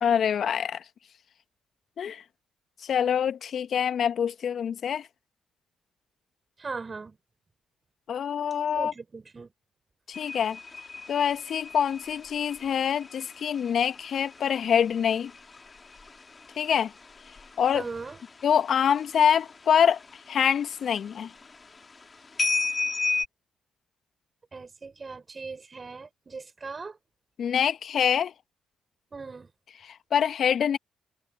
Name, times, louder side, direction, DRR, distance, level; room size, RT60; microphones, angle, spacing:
voice 1, 0.0-0.8 2.0-2.2 2.8-5.1 8.1-8.9 10.1-10.6 11.1-15.3 16.6-16.9 17.6-17.8 18.4-20.0 20.3-21.3 27.4-28.3 29.8-30.8, left 8 dB, 60° left, 1.7 m, -25 dB
voice 2, 6.6-7.2 8.8-9.5 17.7-18.2 24.5-27.0 29.1-29.5, right 4 dB, 35° right, 5.9 m, -39 dB
sound 1, 10.1-18.4 18.7-19.2 19.5-20.6 21.0-21.5 22.4-23.2, left 4 dB, 35° left, 2.1 m, -34 dB
hypercardioid pair, 45°, 0 cm